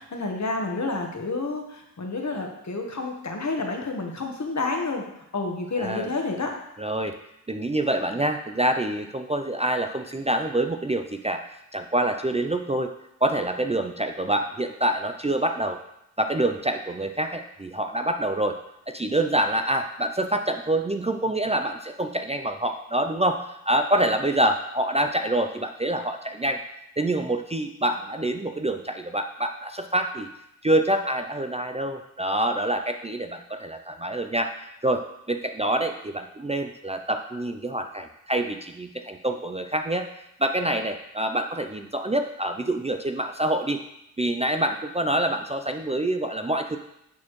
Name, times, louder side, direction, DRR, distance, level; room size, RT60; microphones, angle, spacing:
voice 1, 0.0-5.0 5.3-6.5, left 3 dB, 55° left, 2 dB, 1.2 m, -29 dB
voice 2, 5.8-6.1 6.8-7.2 7.5-11.4 11.7-12.9 13.2-15.8 16.2-18.6 18.9-26.6 27.0-30.3 30.6-40.1 40.4-43.8 44.2-46.8, right 1 dB, 20° right, 6 dB, 0.4 m, -26 dB
8.4 x 4.2 x 3.1 m, 0.80 s
cardioid pair, 40°, 34 cm